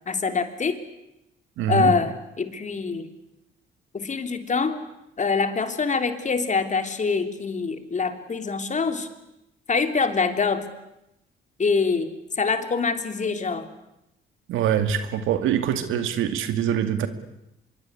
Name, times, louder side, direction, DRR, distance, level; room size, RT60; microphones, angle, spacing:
voice 1, 0.1-0.8 1.7-3.1 3.9-4.8 5.2-9.1 9.7-10.6 11.6-12.1 12.4-13.7, left 4 dB, 35° left, 8 dB, 3.2 m, -24 dB
voice 2, 1.6-2.0 14.5-17.1, right 9 dB, 90° right, 10 dB, 2.4 m, -24 dB
25.0 x 23.0 x 9.7 m, 0.89 s
cardioid pair, 90°, 20 cm